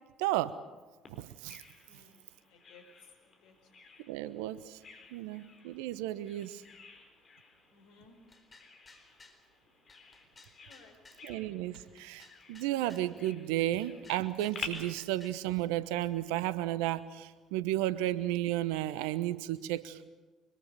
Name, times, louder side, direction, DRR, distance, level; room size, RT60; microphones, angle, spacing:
voice 1, 0.2-0.6 1.1-1.6 4.1-4.8 5.1-6.6 11.2-20.0, right 14 dB, 75° right, 15 dB, 1.0 m, -33 dB
Bird vocalization bird call bird song, 1.1-14.7, left 5 dB, 45° left, 4.8 m, -51 dB
voice 2, 1.9-2.8 3.2-3.8 5.0-5.4 7.7-8.2 10.6-11.3, left 5 dB, 70° left, 5 dB, 4.6 m, -61 dB
sound 1, 8.3-9.4 9.9-11.3 11.7-13.1 13.6-15.4, left 3 dB, 30° left, 4.2 m, -58 dB
24.5 x 22.0 x 6.8 m, 1.2 s
hypercardioid pair, 55°, 0 cm